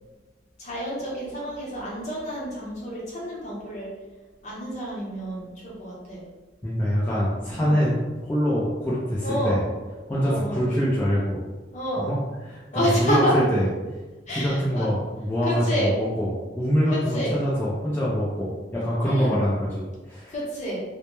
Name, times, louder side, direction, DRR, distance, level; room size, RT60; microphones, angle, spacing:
voice 1, 0.6-3.9 4.4-6.2 7.6-7.8 9.2-9.6 10.2-10.7 11.7-12.1 12.7-13.4 14.3-14.9 15.4-15.9 16.9-17.4 19.0-19.4 20.3-20.8, equal, 40° left, -5 dB, 0.8 m, -29 dB
voice 2, 6.6-8.0 8.2-9.6 10.1-11.4 12.0-13.7 14.3-20.3, equal, 10° left, -8 dB, 0.4 m, -24 dB
2.1 x 2.1 x 2.9 m, 1.2 s
head